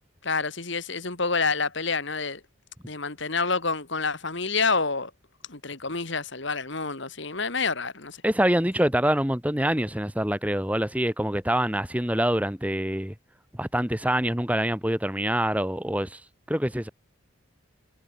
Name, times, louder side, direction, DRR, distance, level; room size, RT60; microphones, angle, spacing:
voice 1, 0.2-2.4 2.9-5.1 5.5-8.2, left 4 dB, 55° left, 2.4 m, -28 dB
voice 2, 8.2-13.1 13.6-16.2 16.5-16.9, right 1 dB, 5° right, 1.6 m, -25 dB
head